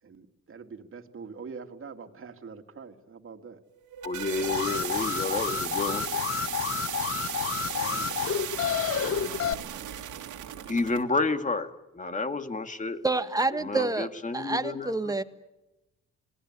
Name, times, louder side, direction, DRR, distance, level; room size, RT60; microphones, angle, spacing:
voice 1, 0.0-3.6 7.6-9.7, right 5 dB, 45° right, 2.5 m, -45 dB
sound 1, 3.7-11.0, right 11 dB, 85° right, 2.4 m, -36 dB
voice 2, 4.0-6.1 10.7-13.0 13.6-14.9, left 3 dB, 25° left, 2.0 m, -30 dB
Alarm, 4.4-9.5, left 8 dB, 50° left, 0.9 m, -30 dB
voice 3, 13.0-14.1 14.3-15.2, right 3 dB, 10° right, 1.6 m, -27 dB
27.5 x 19.0 x 9.7 m
cardioid pair, 90°, 30 cm